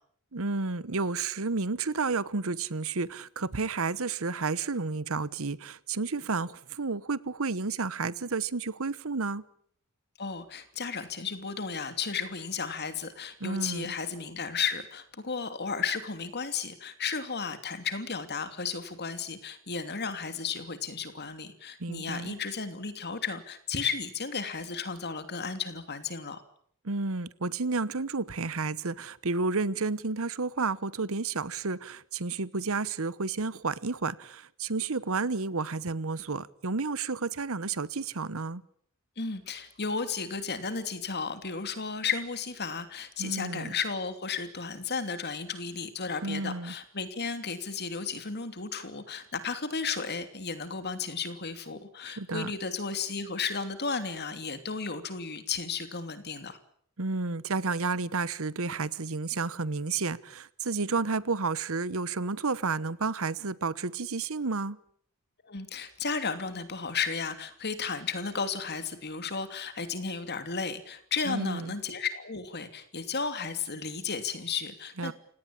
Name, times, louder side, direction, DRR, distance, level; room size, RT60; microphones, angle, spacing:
voice 1, 0.3-9.4 13.4-13.9 21.8-22.3 26.8-38.6 43.2-43.7 46.2-46.7 52.1-52.5 57.0-64.8 71.3-71.7 75.0-75.1, right 4 dB, 70° right, 1.1 m, -31 dB
voice 2, 10.2-26.4 39.2-56.6 65.4-75.1, left 5 dB, 50° left, 2.9 m, -34 dB
29.0 x 17.5 x 8.8 m
head